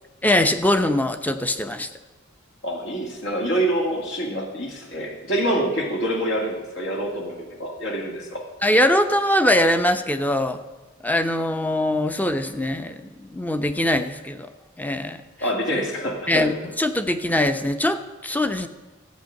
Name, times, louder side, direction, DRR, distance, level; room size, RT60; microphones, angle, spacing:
voice 1, 0.2-1.9 8.6-10.6 11.0-14.5 14.8-15.2 16.3-16.5 16.8-18.7, left 1 dB, 10° left, 9 dB, 0.7 m, -22 dB
voice 2, 2.6-8.4 15.4-16.5, right 1 dB, 70° left, 0 dB, 2.3 m, -26 dB
13.5 x 8.6 x 6.5 m, 1.2 s
head